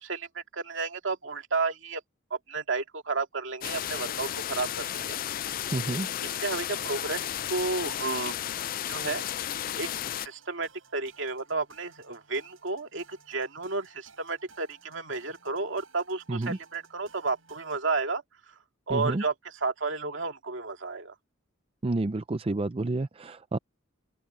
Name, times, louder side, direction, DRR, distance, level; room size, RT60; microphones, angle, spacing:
voice 1, 0.0-2.0 2.5-4.7 5.1-5.2 6.2-8.3 8.9-9.2 9.8-9.9 10.1-18.2 18.9-21.1, right 3 dB, 65° right, 2.6 m, -32 dB
sound 1, 3.6-10.3, left 11 dB, 45° left, 0.4 m, -33 dB
sound 2, 4.2-17.9, right 5 dB, 85° right, 6.9 m, -58 dB
voice 2, 5.7-6.1 16.3-16.6 18.9-19.2 21.8-23.6, right 2 dB, 30° right, 0.5 m, -29 dB
open air
head